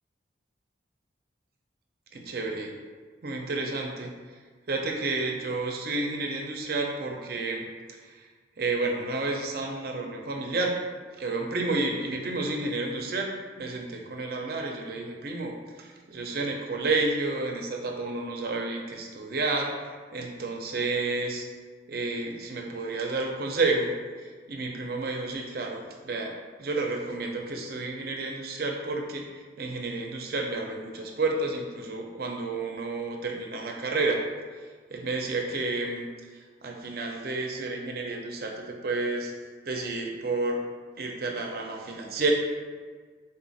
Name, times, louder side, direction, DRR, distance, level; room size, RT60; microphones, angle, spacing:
voice 1, 2.1-2.7 3.2-4.1 4.7-7.7 8.0-8.3 8.6-10.7 11.2-13.3 13.6-21.5 21.9-23.9 24.2-34.2 34.9-36.1 36.6-39.3 39.7-40.6 41.0-42.3, right 3 dB, 55° right, 1 dB, 0.5 m, -30 dB
3.7 x 2.4 x 3.9 m, 1.5 s
head